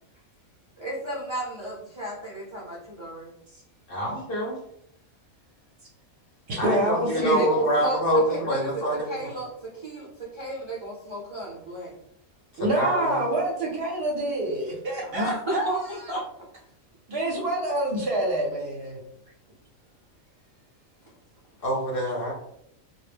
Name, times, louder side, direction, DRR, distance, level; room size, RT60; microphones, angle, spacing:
voice 1, 0.8-3.3 7.2-11.9 15.0-16.2 21.0-21.1, right 2 dB, 40° right, -7 dB, 0.4 m, -33 dB
voice 2, 3.9-4.6 6.6-9.3 12.5-13.2 21.6-22.3, equal, 55° left, -3 dB, 0.7 m, -26 dB
voice 3, 6.5-7.5 12.6-15.7 16.0-16.1 17.1-19.0, right 1 dB, 60° right, -2 dB, 0.7 m, -26 dB
2.2 x 2.0 x 3.3 m, 0.72 s
omnidirectional pair, 1.4 m